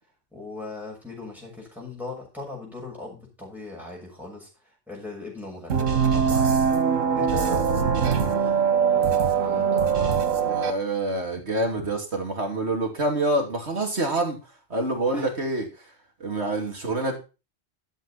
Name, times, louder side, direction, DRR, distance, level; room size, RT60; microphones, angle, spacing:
voice 1, 0.3-4.5 4.9-6.7 7.1-8.6 8.9-10.6 15.1-15.3, left 2 dB, ahead, -3 dB, 6.5 m, -39 dB
sound 1, 5.7-10.7, right 6 dB, 85° right, 1.6 m, -22 dB
voice 2, 10.4-14.4 14.7-15.7 16.2-17.2, right 2 dB, 55° right, 2 dB, 3.1 m, -26 dB
12.5 x 8.3 x 4.2 m, 0.31 s
omnidirectional pair, 1.3 m